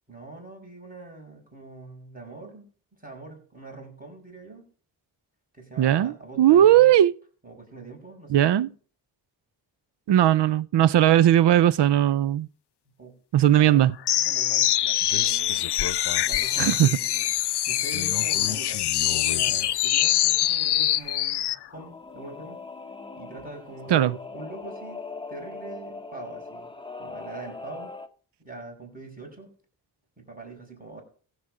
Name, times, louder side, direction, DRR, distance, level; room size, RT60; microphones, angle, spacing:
voice 1, 0.1-2.7 3.0-4.6 5.5-6.7 7.4-8.7 13.0-13.1 13.6-15.7 16.2-17.3 17.7-22.6 23.1-25.0 25.3-26.7 27.0-27.9 28.4-29.5 30.2-31.0, right 3 dB, 20° right, 6.0 m, -43 dB
voice 2, 5.8-7.1 8.3-8.7 10.1-12.5 13.3-13.9 16.6-16.9 23.9-24.1, right 11 dB, 60° right, 0.6 m, -18 dB
sound 1, 14.1-21.6, left 13 dB, 60° left, 0.6 m, -24 dB
Singing / Musical instrument, 21.7-28.1, left 3 dB, 10° left, 0.9 m, -40 dB
15.5 x 7.3 x 4.9 m
cardioid pair, 50°, 47 cm